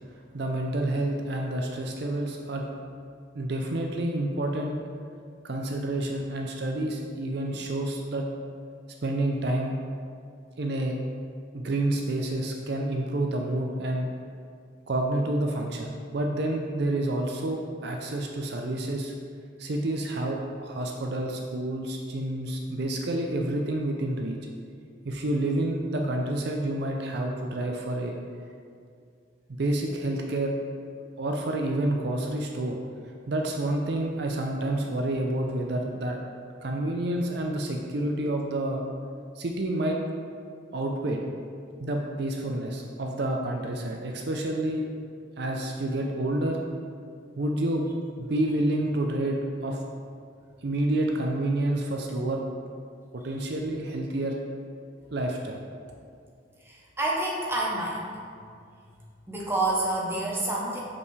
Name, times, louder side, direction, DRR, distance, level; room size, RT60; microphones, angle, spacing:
voice 1, 0.3-2.7 3.3-4.9 5.4-8.3 9.0-9.8 10.6-11.0 11.5-14.1 14.9-19.1 19.6-24.4 25.0-28.2 29.5-30.5 31.2-32.8 33.3-36.2 36.6-38.8 39.4-40.0 40.7-41.2 41.8-44.9 45.4-46.6 47.4-49.8 50.6-52.4 53.1-54.4 55.1-55.6, right 1 dB, 55° right, 1 dB, 0.5 m, -29 dB
voice 2, 56.6-58.1 59.3-60.8, right 2 dB, 15° right, -4 dB, 0.9 m, -28 dB
6.8 x 5.4 x 3.2 m, 2.3 s
head